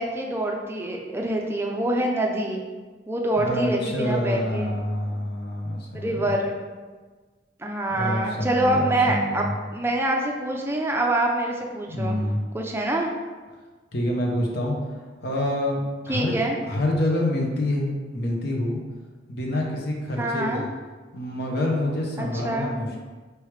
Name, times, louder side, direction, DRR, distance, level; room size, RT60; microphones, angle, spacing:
voice 1, 0.0-2.6 3.1-4.7 6.0-6.6 7.6-12.2 12.5-13.1 16.1-16.6 20.2-20.6 22.2-22.7, right 1 dB, 15° right, 0 dB, 0.4 m, -25 dB
voice 2, 3.4-6.3 7.9-9.6 11.9-12.4 13.9-14.8 15.2-16.4 16.6-18.8 19.3-20.7 21.1-23.0, left 1 dB, 60° left, -1 dB, 0.8 m, -27 dB
4.6 x 3.3 x 3.2 m, 1.4 s
head